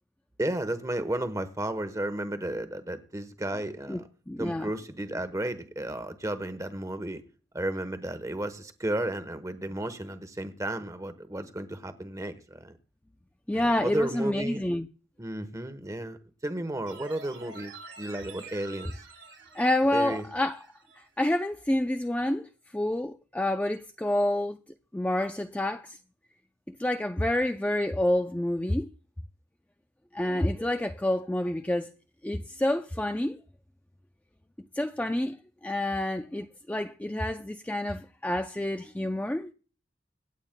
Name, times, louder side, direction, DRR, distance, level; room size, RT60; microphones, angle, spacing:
voice 1, 0.4-4.1 4.4-7.2 7.5-12.8 13.5-14.6 15.2-19.0 19.9-20.2, right 1 dB, 15° right, 1.0 m, -33 dB
voice 2, 3.9-4.7 13.5-14.9 19.5-20.5 21.2-24.6 24.9-26.0 26.7-28.9 30.1-31.9 32.2-33.4 34.8-35.4 35.6-39.5, left 1 dB, 10° left, 0.4 m, -28 dB
sound 1, 16.8-21.1 21.4-21.5, right 3 dB, 75° right, 2.4 m, -48 dB
25.5 x 8.9 x 2.2 m
head